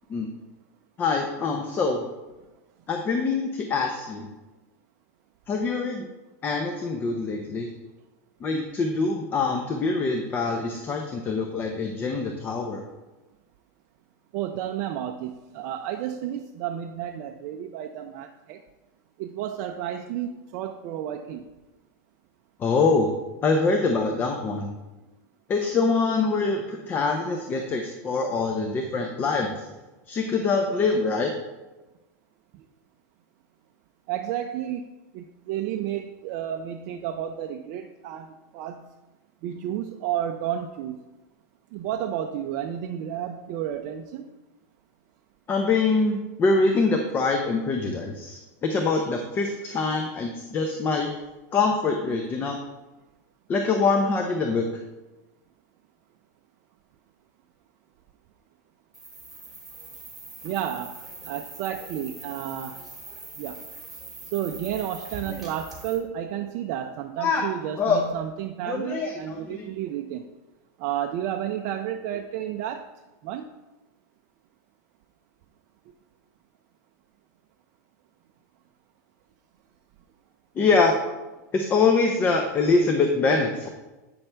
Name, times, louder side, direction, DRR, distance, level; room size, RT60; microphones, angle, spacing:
voice 1, 1.0-2.1 2.9-4.3 5.5-6.1 6.4-7.7 8.4-12.8 22.6-23.1 23.4-24.7 25.5-29.6 30.1-31.3 45.5-51.1 51.5-52.6 53.5-54.6 65.3-65.4 67.2-67.5 67.8-68.0 68.7-69.7 80.6-81.0 81.5-83.7, left 4 dB, 20° left, 4 dB, 0.6 m, -24 dB
voice 2, 14.3-18.6 19.2-21.4 34.1-34.9 35.1-38.9 39.4-41.0 41.7-44.2 60.4-61.0 61.3-62.8 63.4-63.6 64.3-70.3 70.8-72.8 73.2-73.5, right 10 dB, 45° right, 4 dB, 0.4 m, -31 dB
sound 1, 58.9-66.0, right 3 dB, ahead, 2.3 m, -42 dB
8.6 x 5.8 x 3.3 m, 1.1 s
supercardioid pair, 155°, 10 cm